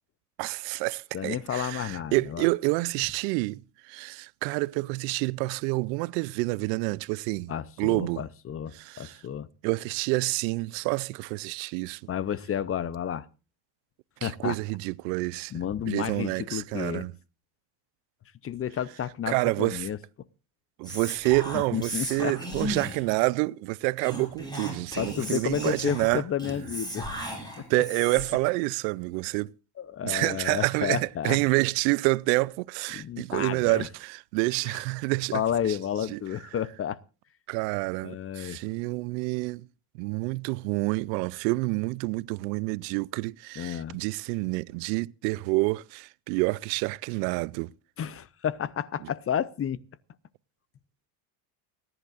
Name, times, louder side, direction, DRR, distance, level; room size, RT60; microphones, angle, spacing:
voice 1, 0.4-3.6 3.9-7.5 7.8-8.2 8.7-9.2 9.6-12.0 14.2-15.5 15.9-17.1 19.3-19.9 20.8-26.2 27.7-29.5 30.0-35.4 36.1-36.2 37.5-39.6 40.0-47.7, right 24 dB, 90° right, 0.6 m, -28 dB
voice 2, 1.1-2.5 7.5-9.5 12.1-13.3 14.2-14.6 15.5-17.1 18.4-20.0 21.5-22.4 25.0-27.1 27.6-27.7 29.8-31.4 32.9-33.9 34.6-34.8 35.3-37.0 38.0-38.6 43.6-44.0 48.0-49.8, left 9 dB, 30° left, 0.6 m, -31 dB
Whispering, 20.8-23.1 24.0-28.4, equal, 10° left, 6.7 m, -36 dB
29.5 x 11.0 x 2.4 m
supercardioid pair, 105°, 49 cm